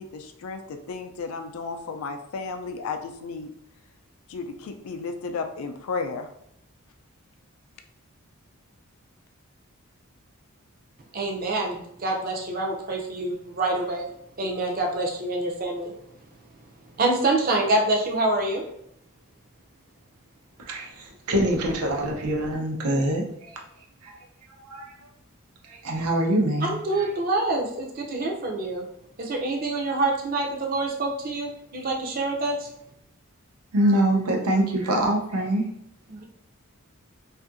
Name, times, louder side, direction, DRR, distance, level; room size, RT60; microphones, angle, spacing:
voice 1, 0.0-3.5 4.3-6.3, left 4 dB, 75° left, 6 dB, 0.4 m, -33 dB
voice 2, 11.1-14.1 14.4-15.9 17.0-18.6 26.6-28.8 29.2-32.7 36.1-36.2, right 2 dB, 40° right, 0 dB, 0.5 m, -26 dB
voice 3, 20.7-23.5 24.0-24.1 24.6-24.9 25.6-27.1 33.7-35.7, right 1 dB, 90° right, 1 dB, 0.6 m, -24 dB
2.6 x 2.5 x 2.5 m, 0.74 s
head